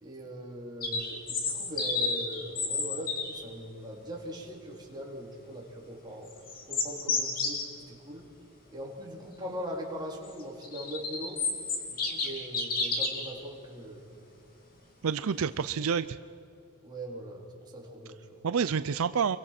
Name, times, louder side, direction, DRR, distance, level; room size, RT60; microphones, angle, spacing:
voice 1, 0.0-6.4 6.7-8.3 8.7-11.4 11.9-14.1 16.8-18.5, right 1 dB, 20° right, -3 dB, 3.7 m, -41 dB
sound 1, 0.8-3.4 6.3-7.6 10.4-13.3, left 4 dB, 40° left, 3.0 m, -31 dB
voice 2, 15.0-16.2 18.4-19.4, right 6 dB, 70° right, 13 dB, 0.5 m, -28 dB
28.5 x 23.0 x 6.0 m, 2.7 s
head